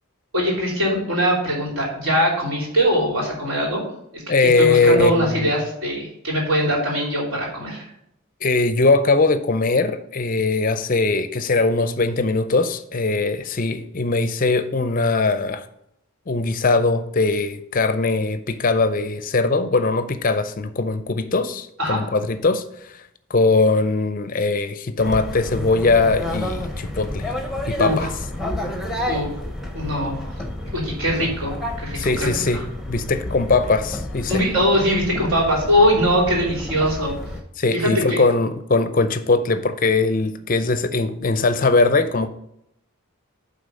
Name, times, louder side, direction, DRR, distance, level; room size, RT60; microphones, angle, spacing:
voice 1, 0.3-3.8 4.1-7.9 21.8-22.0 27.8-28.1 29.1-29.3 29.7-30.4 30.7-32.6 34.3-37.1 37.7-38.3, equal, 70° right, 3.2 m, -22 dB
voice 2, 4.3-5.5 8.4-15.6 16.3-22.9 23.3-27.3 27.7-28.1 31.9-32.6 32.9-34.3 37.6-42.3, left 3 dB, 40° left, 0.5 m, -20 dB
sound 1, 25.0-37.4, left 1 dB, ahead, 0.9 m, -30 dB
9.0 x 3.8 x 5.2 m
head